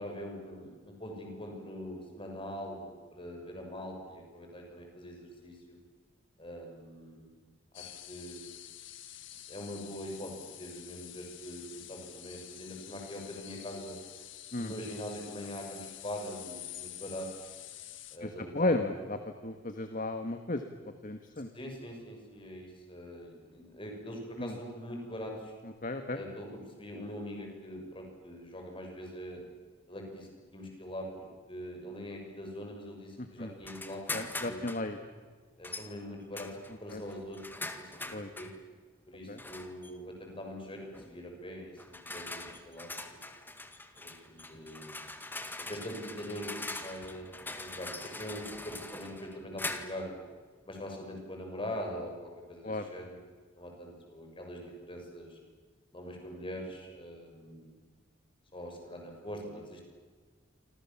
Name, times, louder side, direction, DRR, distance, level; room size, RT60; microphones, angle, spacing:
voice 1, 0.0-5.8 6.4-7.3 7.7-8.5 9.3-14.0 14.6-17.5 18.1-18.8 21.5-25.5 26.1-29.4 29.9-34.6 35.6-38.5 39.1-43.2 43.9-45.0 45.6-50.2 50.6-53.2 53.5-55.4 55.9-57.7 58.5-59.8, equal, 25° left, 2 dB, 6.9 m, -43 dB
sound 1, 7.7-18.2, left 13 dB, 70° left, 1.9 m, -48 dB
voice 2, 18.2-20.7 21.0-21.5 24.4-24.5 25.8-26.2 33.2-33.5 34.1-35.0 36.9-37.0 38.1-38.3 39.3-39.4 52.6-52.9, left 2 dB, 45° left, 7 dB, 1.6 m, -34 dB
sound 2, 33.6-34.9 35.6-35.9 36.3-38.6 39.4-39.9 40.9-41.2 41.8-50.1, left 2 dB, 10° left, 1.9 m, -42 dB
28.5 x 26.0 x 7.3 m, 1.5 s
head